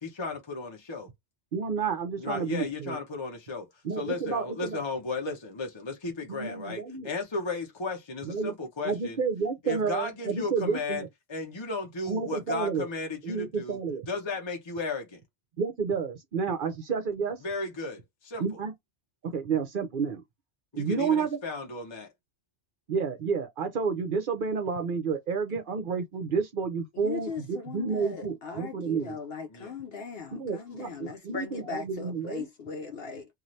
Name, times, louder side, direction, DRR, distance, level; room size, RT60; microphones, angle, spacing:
voice 1, 0.0-1.1 2.2-3.7 3.9-9.2 9.6-13.8 14.1-15.2 17.4-18.4 20.7-22.1 29.5-29.7 30.9-31.0, left 3 dB, 30° left, 0.6 m, -35 dB
voice 2, 1.5-3.0 3.8-4.8 6.3-7.1 8.2-8.5 8.8-11.1 12.1-12.9 13.2-14.0 15.6-17.4 18.4-18.7 19.2-20.2 20.7-21.4 22.9-29.2 30.3-32.5, right 5 dB, 55° right, 0.7 m, -30 dB
voice 3, 26.9-33.3, left 5 dB, 65° left, 0.7 m, -39 dB
2.6 x 2.4 x 3.1 m
omnidirectional pair, 1.2 m